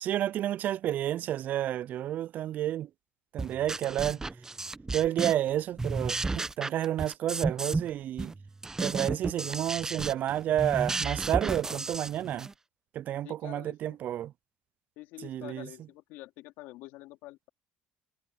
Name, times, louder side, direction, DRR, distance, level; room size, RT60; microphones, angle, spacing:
voice 1, 0.0-2.9 3.3-4.2 4.9-8.3 8.8-12.5 12.9-14.3 15.2-15.7, right 12 dB, 55° right, 0.3 m, -30 dB
sound 1, 3.4-5.5 5.8-7.9 8.2-12.5, right 3 dB, 15° right, 0.9 m, -33 dB
voice 2, 13.2-14.0 15.0-17.5, left 18 dB, 80° left, 3.5 m, -47 dB
supercardioid pair, 100°, 3 cm